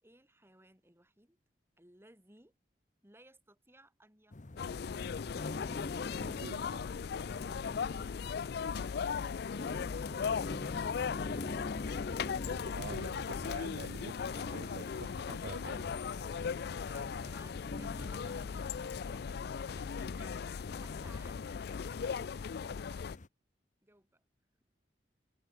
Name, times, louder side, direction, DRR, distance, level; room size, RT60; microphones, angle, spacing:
voice 1, 0.0-1.4 1.8-2.5 3.0-5.1 9.7-12.1 14.2-15.0 16.1-20.5 20.7-22.4 23.8-24.2, right 1 dB, 15° right, 4.9 m, -61 dB
sound 1, 4.3-23.3, left 2 dB, 45° left, 0.9 m, -46 dB
sound 2, 4.6-23.2, left 6 dB, 65° left, 0.4 m, -38 dB
voice 2, 6.2-6.9 12.4-14.2 14.5-15.9 22.9-23.0, right 6 dB, 65° right, 0.4 m, -47 dB
open air
head